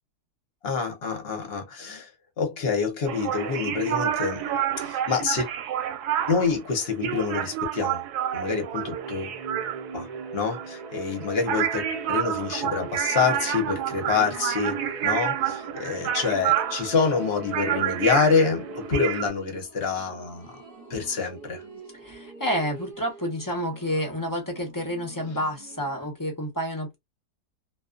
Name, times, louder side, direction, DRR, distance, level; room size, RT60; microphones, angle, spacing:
voice 1, 0.6-2.1 2.4-4.4 4.8-5.5 6.3-9.4 9.9-10.1 10.3-11.8 12.1-14.8 15.0-20.6 20.9-21.6, left 5 dB, 50° left, 0.9 m, -26 dB
sound 1, 3.1-19.2, right 10 dB, 85° right, 1.1 m, -29 dB
sound 2, 8.1-19.3, right 4 dB, 55° right, 0.4 m, -40 dB
sound 3, 13.0-26.1, right 3 dB, 15° right, 1.0 m, -47 dB
voice 2, 22.0-27.0, equal, 25° left, 0.4 m, -29 dB
2.4 x 2.3 x 2.4 m
omnidirectional pair, 1.6 m